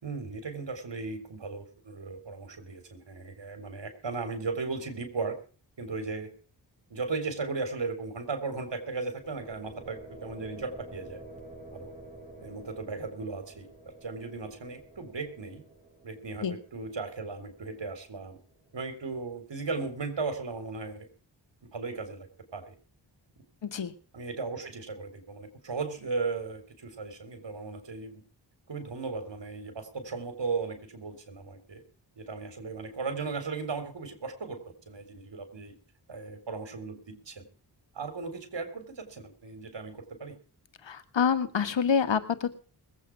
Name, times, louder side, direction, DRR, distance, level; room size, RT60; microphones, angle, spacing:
voice 1, 0.0-5.4 5.8-6.3 6.9-11.2 11.7-11.9 12.4-15.6 16.0-18.4 18.7-21.1 21.7-22.7 24.1-28.2 28.7-31.8 32.2-34.6 34.9-35.8 36.1-37.5 37.9-40.3, right 4 dB, 75° right, 8 dB, 4.0 m, -36 dB
sound 1, 9.0-18.8, right 2 dB, 15° right, 7.1 m, -50 dB
voice 2, 23.6-23.9 40.8-42.5, left 7 dB, 80° left, 11 dB, 1.7 m, -27 dB
21.5 x 8.5 x 4.8 m, 0.40 s
cardioid pair, 50°, 44 cm